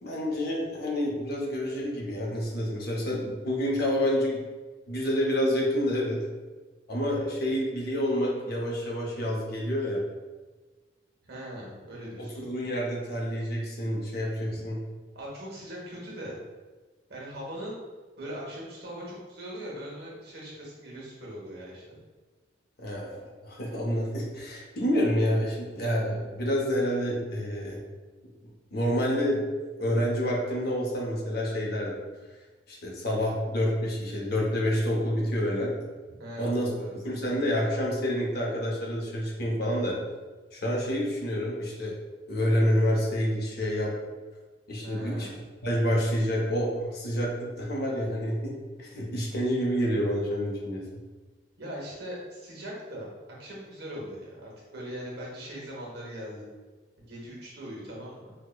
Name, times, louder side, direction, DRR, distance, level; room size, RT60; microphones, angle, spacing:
voice 1, 0.0-4.4 4.9-6.2 6.9-10.0 12.2-14.8 22.8-27.8 28.7-29.4 29.8-32.0 32.7-35.7 36.4-36.7 37.0-40.0 40.5-42.0 42.3-43.9 44.7-45.3 45.6-50.8, equal, 55° left, -2 dB, 0.7 m, -28 dB
voice 2, 11.2-12.5 14.5-14.6 15.1-16.4 17.1-17.8 18.2-22.0 36.2-37.0 39.3-39.4 44.8-45.4 51.6-53.1 53.4-56.5 57.1-58.3, equal, 60° right, -3 dB, 1.0 m, -40 dB
4.6 x 2.1 x 2.2 m, 1.3 s
head